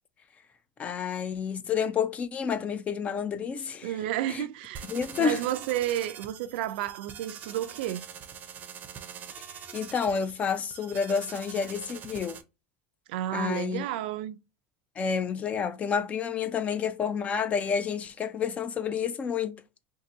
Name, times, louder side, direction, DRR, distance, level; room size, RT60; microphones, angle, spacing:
voice 1, 0.8-4.0 4.3-4.5 4.9-5.4 9.7-12.4 13.3-13.9 15.0-19.6, left 6 dB, 25° left, 0.4 m, -29 dB
voice 2, 3.8-4.9 5.2-8.0 13.1-14.4, right 13 dB, 75° right, 0.4 m, -31 dB
sound 1, 4.7-12.4, right 7 dB, 30° right, 0.6 m, -44 dB
2.7 x 2.6 x 3.7 m
supercardioid pair, 140°, 5 cm